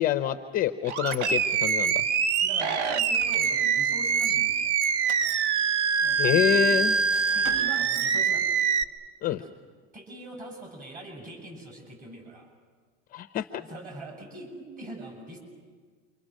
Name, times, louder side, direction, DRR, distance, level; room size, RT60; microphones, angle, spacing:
voice 1, 0.0-2.0 6.2-7.0 9.2-9.4 13.1-13.5, left 11 dB, 25° left, 7 dB, 0.7 m, -26 dB
Animal, 0.8-8.8, right 6 dB, 75° right, 1.2 m, -24 dB
sound 1, 1.0-1.6 2.9-3.8 4.9-5.9 7.1-8.1, right 2 dB, 60° right, 6.0 m, -45 dB
voice 2, 2.4-4.7 6.0-8.5 9.4-9.5 9.9-12.5 13.5-15.4, right 1 dB, 25° right, 2 dB, 7.8 m, -43 dB
29.0 x 25.0 x 6.4 m, 1.5 s
supercardioid pair, 145°, 34 cm